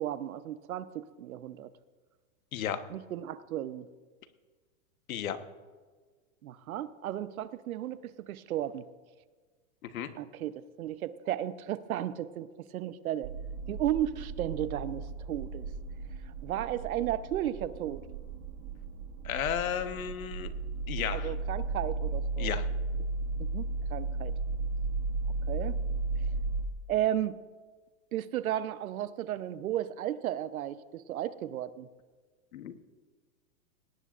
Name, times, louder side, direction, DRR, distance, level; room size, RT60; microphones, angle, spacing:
voice 1, 0.0-1.7 2.9-3.9 6.4-8.9 10.1-12.5 12.7-13.3 13.7-15.7 16.4-18.0 21.1-22.5 23.4-24.4 25.5-25.8 26.9-27.4 28.1-31.9, right 12 dB, 85° right, 14 dB, 0.9 m, -34 dB
voice 2, 2.5-2.8 5.1-5.4 9.8-10.1 19.2-20.5 20.9-21.3 22.4-22.7 32.5-32.9, left 9 dB, 75° left, 10 dB, 1.3 m, -34 dB
sound 1, 13.2-26.6, right 3 dB, 55° right, 1.5 m, -35 dB
20.5 x 18.0 x 2.5 m, 1.5 s
supercardioid pair, 165°, 41 cm